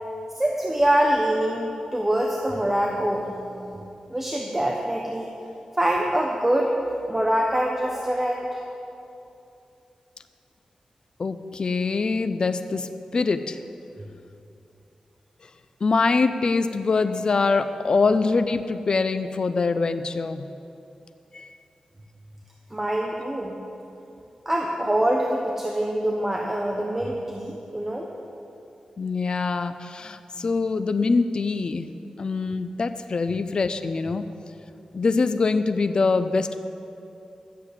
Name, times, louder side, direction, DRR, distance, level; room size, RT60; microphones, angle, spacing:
voice 1, 0.4-5.3 5.8-6.7 7.1-8.6 22.7-23.6 24.5-28.1, right 1 dB, 15° right, 0 dB, 1.0 m, -24 dB
voice 2, 11.2-13.6 15.4-15.5 15.8-20.5 21.3-21.5 29.0-31.9 32.2-34.2 34.9-36.6, left 4 dB, 45° left, 10 dB, 0.5 m, -24 dB
12.0 x 7.6 x 8.2 m, 2.7 s
wide cardioid pair, 130°, 2 cm